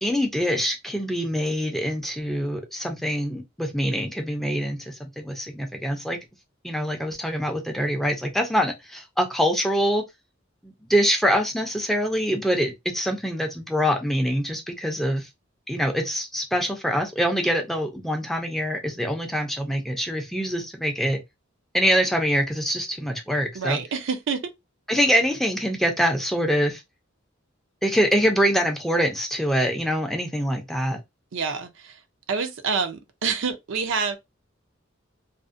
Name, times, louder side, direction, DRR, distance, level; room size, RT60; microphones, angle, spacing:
voice 1, 0.0-6.2 6.6-10.0 10.6-15.3 15.7-21.2 21.7-23.8 24.9-26.8 27.8-31.0, equal, ahead, 0.4 m, -24 dB
voice 2, 23.5-24.4 31.3-32.0 32.3-34.2, right 5 dB, 65° right, 0.5 m, -27 dB
2.4 x 2.0 x 2.5 m
head